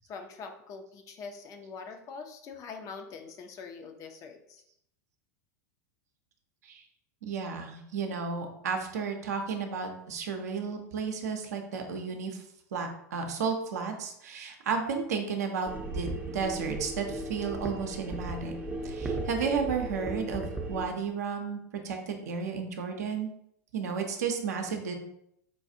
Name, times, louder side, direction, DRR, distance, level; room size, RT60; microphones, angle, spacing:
voice 1, 0.1-4.6, left 5 dB, 35° left, 5 dB, 0.5 m, -44 dB
voice 2, 7.2-12.4 12.7-16.1 16.3-18.5 18.8-21.6 21.8-23.3 23.7-25.0, right 5 dB, 65° right, 3 dB, 0.6 m, -33 dB
sound 1, 15.7-20.9, right 2 dB, 15° right, 0.5 m, -36 dB
4.5 x 2.3 x 2.7 m, 0.74 s
figure-of-eight pair, 85°, 9 cm